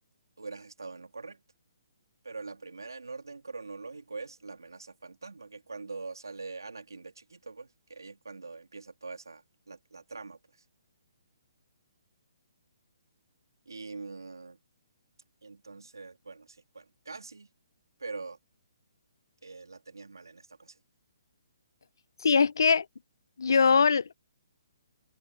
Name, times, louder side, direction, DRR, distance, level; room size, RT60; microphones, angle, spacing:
voice 1, 0.4-1.4 2.2-10.4 13.7-14.6 15.4-17.5 18.0-18.4 19.4-20.8, right 4 dB, 90° right, 2.7 m, -43 dB
voice 2, 22.2-22.9 23.4-24.1, left 5 dB, 75° left, 0.7 m, -22 dB
hypercardioid pair, 145°, 2 cm